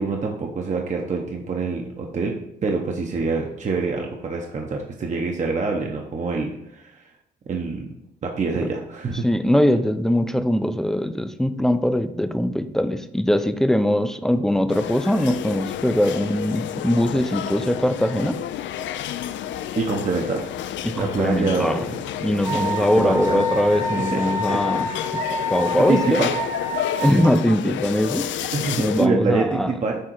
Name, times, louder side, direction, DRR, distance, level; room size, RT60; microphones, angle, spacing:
voice 1, 0.0-2.3 2.6-6.9 7.5-7.9 8.2-9.2 19.8-20.4 21.0-21.9 22.5-22.7 22.9-23.4 24.1-25.0 25.9-26.3 28.5-30.0, right 4 dB, 40° right, 1 dB, 0.8 m, -26 dB
voice 2, 9.2-18.4 20.8-21.8 22.2-24.9 25.1-26.3 27.0-29.7, equal, ahead, 10 dB, 0.4 m, -21 dB
sound 1, 14.7-29.1, left 11 dB, 70° left, 0.4 m, -30 dB
Wind instrument woodwind instrument, 22.4-27.3, left 1 dB, 15° right, 1.0 m, -27 dB
6.5 x 3.6 x 4.5 m, 0.82 s
cardioid pair, 90°, 20 cm